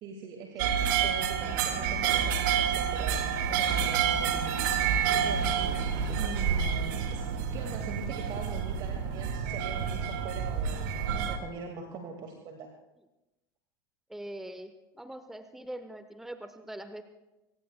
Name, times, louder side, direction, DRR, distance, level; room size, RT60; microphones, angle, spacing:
voice 1, 0.0-4.6 5.1-5.9 6.2-7.3 7.5-10.8 11.3-12.7, right 5 dB, 40° right, 3 dB, 2.0 m, -42 dB
sound 1, 0.6-11.4, right 7 dB, 55° right, 1.9 m, -29 dB
voice 2, 14.1-14.7 15.0-17.0, right 1 dB, 5° right, 9 dB, 1.0 m, -42 dB
26.0 x 24.0 x 2.2 m, 0.99 s
figure-of-eight pair, 80°, 12 cm